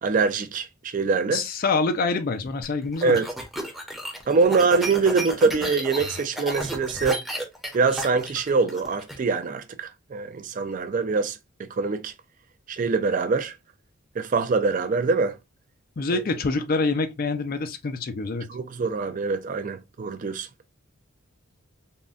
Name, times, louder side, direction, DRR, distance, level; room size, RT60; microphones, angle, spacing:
voice 1, 0.0-1.4 3.0-3.2 4.3-7.2 7.7-12.1 12.7-13.5 14.2-15.3 16.1-16.2 18.5-20.5, right 4 dB, 40° right, 0.4 m, -24 dB
voice 2, 1.3-3.2 16.0-18.5, left 3 dB, 45° left, 0.4 m, -26 dB
sound 1, 2.6-9.2, equal, ahead, 0.6 m, -32 dB
3.6 x 2.1 x 2.4 m
head